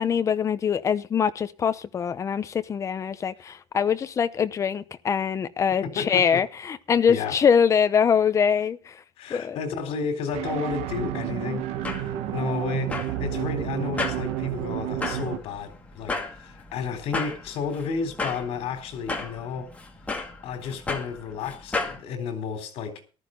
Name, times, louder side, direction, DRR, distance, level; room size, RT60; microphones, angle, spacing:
voice 1, 0.0-8.8 9.3-9.6, left 7 dB, 30° left, 0.8 m, -23 dB
voice 2, 5.8-6.4 7.1-7.4 9.2-11.7 12.3-19.7 20.4-23.0, left 6 dB, 65° left, 3.8 m, -32 dB
sound 1, 10.3-15.4, right 12 dB, 85° right, 1.5 m, -30 dB
sound 2, 11.6-22.0, left 3 dB, 10° left, 2.2 m, -35 dB
14.0 x 13.5 x 3.9 m
cardioid pair, 165°, 11 cm